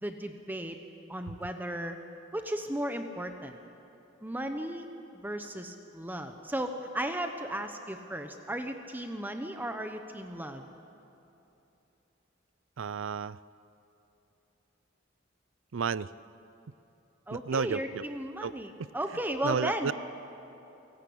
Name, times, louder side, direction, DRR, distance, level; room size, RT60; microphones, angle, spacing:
voice 1, 0.0-0.8 1.1-2.0 2.3-3.6 4.2-4.8 5.2-10.6 17.3-19.9, right 1 dB, 10° right, 6 dB, 1.0 m, -35 dB
voice 2, 12.8-13.4 15.7-16.1 17.3-18.0 18.4-18.5 18.8-18.9 19.4-19.9, right 5 dB, 75° right, 18 dB, 0.5 m, -31 dB
28.5 x 18.0 x 8.7 m, 3.0 s
head